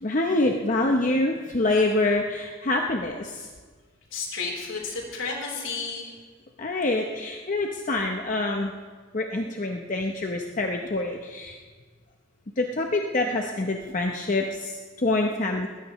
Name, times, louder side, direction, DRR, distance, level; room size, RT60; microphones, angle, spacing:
voice 1, 0.0-3.5 6.6-8.7 9.1-11.6 12.6-15.7, left 2 dB, 40° left, 2 dB, 0.8 m, -26 dB
voice 2, 4.1-6.1, left 4 dB, 85° left, -1 dB, 3.9 m, -32 dB
20.5 x 16.0 x 3.1 m, 1.5 s
head